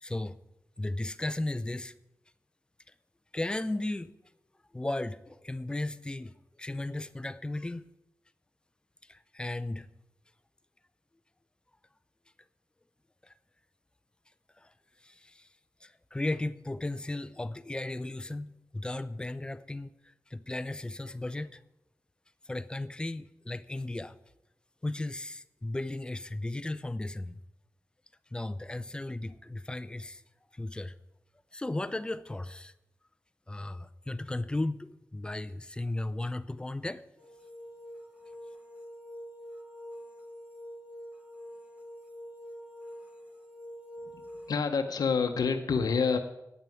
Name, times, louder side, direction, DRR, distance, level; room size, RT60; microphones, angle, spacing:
voice 1, 0.0-0.4 0.8-1.9 3.3-4.1 4.7-7.9 9.0-9.9 13.2-13.3 14.6-14.7 15.0-15.5 15.8-21.6 22.4-24.2 24.8-27.4 28.3-30.2 30.5-31.0 31.5-32.7 33.5-37.0, left 2 dB, 15° left, 0.5 m, -35 dB
sound 1, 37.2-44.5, equal, 20° right, 2.5 m, -46 dB
voice 2, 44.5-46.2, left 5 dB, 80° left, 0.9 m, -27 dB
9.3 x 8.3 x 9.1 m
wide cardioid pair, 140°, 6 cm